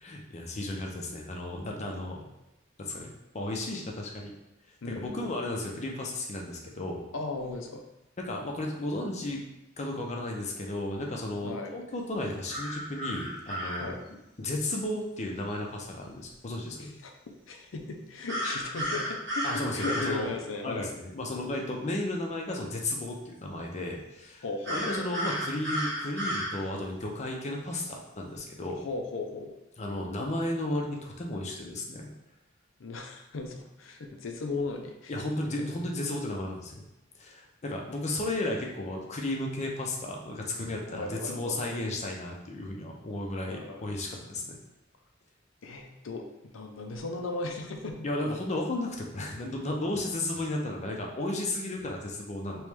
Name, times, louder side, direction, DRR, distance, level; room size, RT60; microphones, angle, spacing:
voice 1, 0.0-2.3 2.8-4.3 4.8-7.0 8.2-9.4 9.8-14.0 14.4-16.9 19.4-20.3 20.6-24.4 24.7-28.8 29.8-32.1 35.1-36.8 37.2-44.6 48.0-52.7, left 1 dB, 35° left, 0 dB, 0.6 m, -34 dB
voice 2, 4.8-5.4 7.1-7.8 11.4-11.8 13.8-14.0 16.8-17.1 17.5-20.9 24.4-25.2 28.8-29.6 32.8-35.1 40.9-41.8 43.5-43.8 45.6-46.3 46.5-48.1, left 3 dB, 80° left, 3 dB, 0.6 m, -37 dB
sound 1, 12.5-13.9 18.3-20.2 24.6-26.5, equal, 65° right, 1.1 m, -32 dB
3.1 x 3.1 x 3.4 m, 0.93 s
head